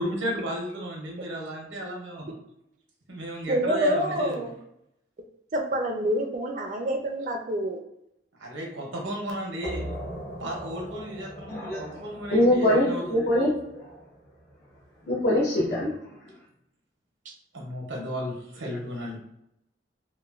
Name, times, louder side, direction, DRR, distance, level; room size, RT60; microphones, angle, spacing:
voice 1, 0.0-2.4 3.1-4.5 8.4-9.8 10.4-13.1 17.5-19.2, equal, 90° right, -1 dB, 0.7 m, -34 dB
voice 2, 3.5-4.6 5.5-7.8 17.3-17.4, right 1 dB, 40° right, 3 dB, 0.4 m, -27 dB
sound 1, 9.6-15.0, equal, 40° left, 1.1 m, -41 dB
voice 3, 11.5-12.0 12.3-13.8 15.0-15.9, left 1 dB, 55° left, -8 dB, 0.8 m, -23 dB
3.0 x 2.2 x 2.4 m, 0.80 s
head